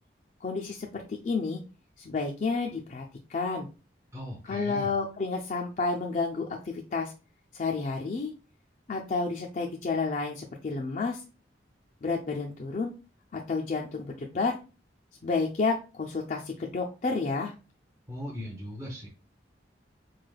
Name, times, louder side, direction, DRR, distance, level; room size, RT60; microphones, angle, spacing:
voice 1, 0.4-1.6 2.0-3.0 3.3-3.7 4.5-7.1 7.5-8.3 8.9-11.2 12.0-12.9 13.3-14.6 15.2-17.5, left 4 dB, 45° left, 0 dB, 0.4 m, -30 dB
voice 2, 4.1-4.9 18.1-19.1, equal, 15° right, -2 dB, 0.5 m, -38 dB
4.2 x 3.2 x 2.3 m, 0.33 s
head